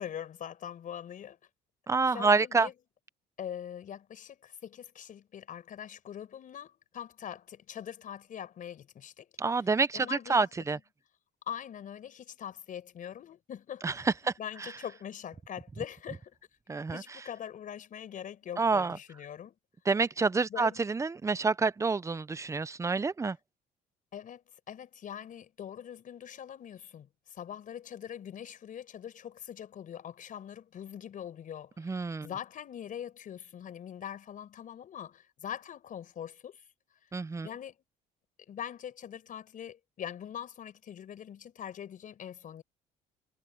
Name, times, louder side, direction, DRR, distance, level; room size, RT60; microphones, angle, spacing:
voice 1, 0.0-1.4 2.1-2.7 3.4-9.3 9.5-9.7 9.9-10.5 11.5-14.0 14.4-16.4 16.9-19.5 20.5-20.8 24.1-36.6 37.4-37.8 38.5-42.6, left 9 dB, 50° left, 4.8 m, -43 dB
voice 2, 1.9-2.7 9.4-10.8 13.8-14.1 16.7-17.0 18.6-19.0 19.9-23.4 31.8-32.3 37.1-37.5, right 4 dB, 15° right, 0.7 m, -28 dB
cardioid pair, 110°, 17 cm